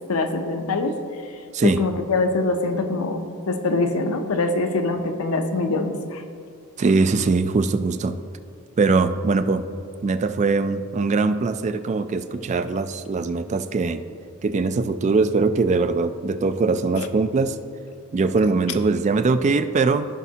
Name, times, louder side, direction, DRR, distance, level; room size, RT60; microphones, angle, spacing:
voice 1, 0.1-1.0 1.6-6.2 17.0-17.1, left 3 dB, 75° left, 6 dB, 0.7 m, -24 dB
voice 2, 6.8-8.2 8.8-9.7 10.0-14.0 14.4-17.6 18.1-20.1, right 4 dB, 35° right, 11 dB, 0.3 m, -21 dB
15.0 x 5.0 x 2.8 m, 2.4 s
head